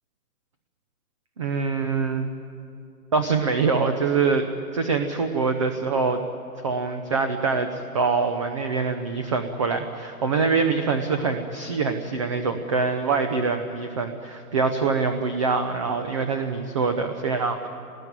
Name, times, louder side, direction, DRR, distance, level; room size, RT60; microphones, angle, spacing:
voice 1, 1.4-2.3 3.1-6.2 6.6-17.7, right 4 dB, 20° right, 7 dB, 0.6 m, -24 dB
26.0 x 19.5 x 9.3 m, 2.7 s
hypercardioid pair, 155°, 48 cm